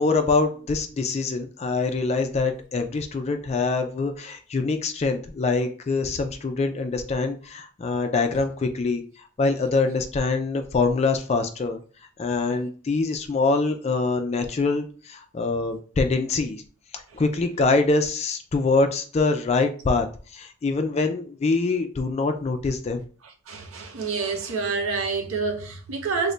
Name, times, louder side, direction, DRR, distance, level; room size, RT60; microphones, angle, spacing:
voice 1, 0.0-11.8 12.2-16.6 16.9-20.1 20.3-23.0, left 3 dB, 30° left, 0.3 m, -24 dB
voice 2, 23.5-26.3, right 4 dB, 85° right, 0.6 m, -27 dB
3.1 x 2.1 x 3.8 m
head